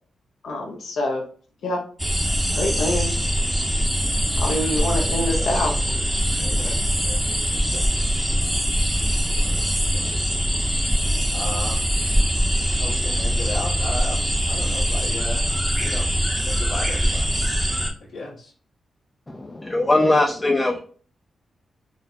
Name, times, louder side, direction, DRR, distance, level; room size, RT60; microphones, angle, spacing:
voice 1, 0.4-1.2 1.6-1.8 2.6-3.1 4.4-5.7, left 1 dB, 80° left, 1 dB, 0.8 m, -25 dB
sound 1, 2.0-17.9, equal, 5° right, 0.7 m, -22 dB
voice 2, 5.4-7.9 9.4-10.1 11.3-11.9 12.7-15.4 15.8-16.1 16.4-17.3 18.1-18.5, left 2 dB, 65° left, -9 dB, 1.4 m, -36 dB
voice 3, 19.3-20.8, left 2 dB, 20° left, 2 dB, 0.4 m, -20 dB
4.1 x 2.1 x 2.8 m, 0.44 s
cardioid pair, 75°, 0 cm